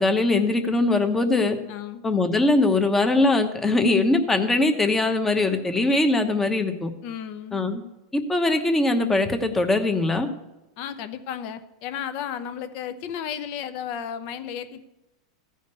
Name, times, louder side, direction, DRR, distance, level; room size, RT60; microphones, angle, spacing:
voice 1, 0.0-1.6 2.0-6.9 7.5-7.8 8.1-10.3, left 2 dB, 10° left, 7 dB, 1.0 m, -21 dB
voice 2, 1.7-2.0 7.0-7.7 10.8-14.8, left 8 dB, 45° left, 10 dB, 0.9 m, -33 dB
15.0 x 5.1 x 6.7 m, 0.96 s
supercardioid pair, 140°, 3 cm